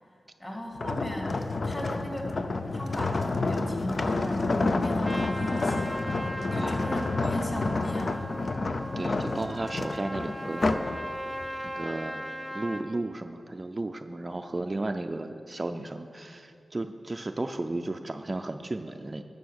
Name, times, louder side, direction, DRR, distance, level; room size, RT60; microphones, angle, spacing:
voice 1, 0.4-1.4 1.6-2.4 2.7-6.0 6.5-8.3, left 1 dB, 25° left, 0 dB, 2.4 m, -37 dB
sound 1, 0.8-11.0 11.4-11.7, left 3 dB, 55° left, 0.5 m, -29 dB
Trumpet, 5.0-12.9, equal, 5° left, 1.1 m, -38 dB
voice 2, 9.0-10.7 11.6-12.2 12.5-19.2, right 2 dB, 35° right, 6 dB, 0.4 m, -34 dB
11.5 x 6.7 x 6.4 m, 2.6 s
cardioid pair, 55°, 0 cm